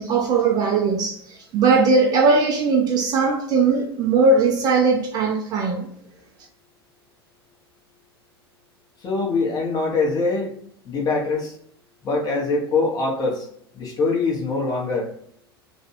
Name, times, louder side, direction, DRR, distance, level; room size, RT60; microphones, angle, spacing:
voice 1, 0.0-5.9, right 4 dB, 30° right, 0.4 m, -19 dB
voice 2, 9.0-10.6 10.8-11.5 12.0-13.5 13.7-15.1, left 3 dB, 30° left, 0.9 m, -23 dB
2.5 x 2.2 x 2.8 m
figure-of-eight pair, 85°, 13 cm